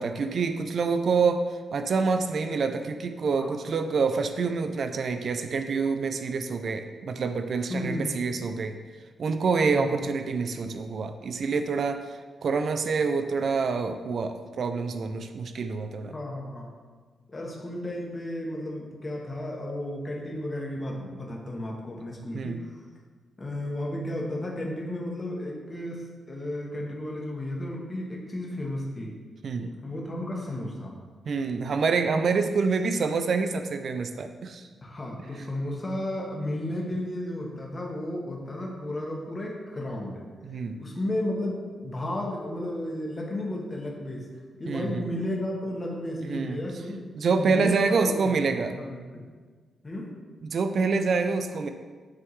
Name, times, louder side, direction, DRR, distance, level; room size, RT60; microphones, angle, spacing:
voice 1, 0.0-8.8 9.2-12.1 12.4-16.1 22.3-22.6 29.4-29.7 31.3-34.7 40.4-40.8 44.7-45.1 46.3-46.6 47.1-48.7 50.4-51.7, right 4 dB, 60° right, 8 dB, 0.4 m, -27 dB
voice 2, 7.7-8.2 9.6-10.1 16.1-16.7 17.3-22.8 23.4-29.2 29.7-31.0 34.8-40.2 40.5-44.3 44.6-47.0 47.3-49.2 49.8-50.2, left 1 dB, 30° left, -2 dB, 1.3 m, -33 dB
9.6 x 3.6 x 3.2 m, 1.5 s
cardioid pair, 90°, 0 cm